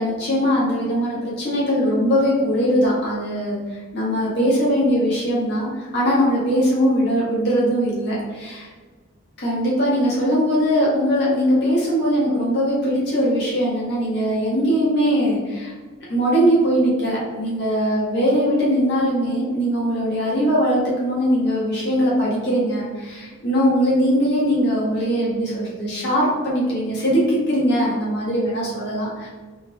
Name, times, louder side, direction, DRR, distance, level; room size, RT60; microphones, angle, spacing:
voice 1, 0.0-3.6 3.9-8.7 9.4-15.7 16.1-29.3, equal, 55° left, -7 dB, 1.5 m, -20 dB
4.0 x 3.4 x 3.6 m, 1.4 s
head